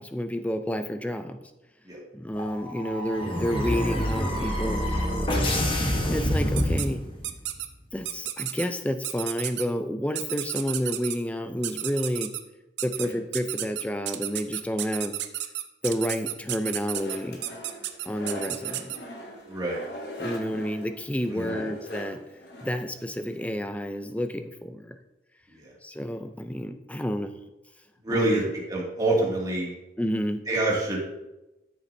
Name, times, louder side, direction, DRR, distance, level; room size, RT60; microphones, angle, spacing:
voice 1, 0.0-1.4 2.1-4.8 5.8-7.0 7.9-12.3 12.8-15.1 15.8-17.4 18.1-18.9 20.2-22.2 22.6-25.0 25.8-27.3 28.1-28.5 30.0-30.4, equal, 10° left, 8 dB, 0.5 m, -30 dB
sound 1, 2.4-7.4, equal, 30° left, 1.2 m, -27 dB
sound 2, 6.6-6.9 7.2-7.7 8.1-8.7 9.0-9.6 10.2-11.2 11.6-12.4 12.8-13.1 13.3-19.0, right 13 dB, 75° right, 0.6 m, -32 dB
sound 3, 16.9-23.4, left 1 dB, 65° left, 1.6 m, -40 dB
voice 2, 19.5-19.8 21.3-21.5 25.5-25.7 28.0-29.7 30.5-31.0, right 2 dB, 20° right, -4 dB, 2.2 m, -26 dB
13.0 x 7.0 x 2.7 m, 0.98 s
head